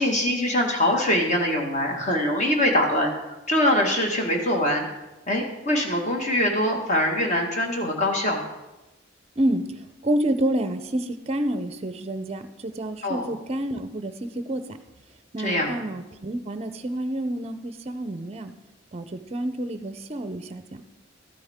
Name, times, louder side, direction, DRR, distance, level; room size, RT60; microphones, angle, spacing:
voice 1, 0.0-3.1 3.5-4.9 5.3-8.4 13.0-13.3 15.4-15.8, left 1 dB, 35° left, 2 dB, 1.6 m, -23 dB
voice 2, 9.4-14.8 15.3-18.5 18.9-20.8, right 1 dB, 30° right, 10 dB, 0.5 m, -29 dB
13.0 x 9.3 x 3.6 m, 1.0 s
head